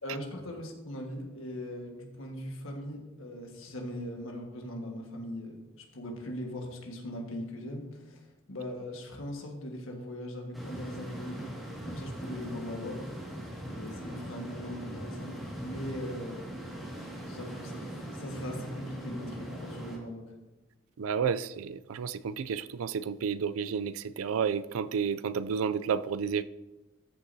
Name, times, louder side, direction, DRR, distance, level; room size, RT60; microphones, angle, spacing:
voice 1, 0.0-11.5 11.8-13.0 13.7-16.4 17.3-20.2, left 1 dB, 75° left, 1.6 m, -40 dB
sound 1, 10.5-20.0, right 1 dB, ahead, 2.0 m, -41 dB
voice 2, 21.0-26.4, right 6 dB, 85° right, 0.4 m, -31 dB
13.5 x 6.6 x 2.8 m
head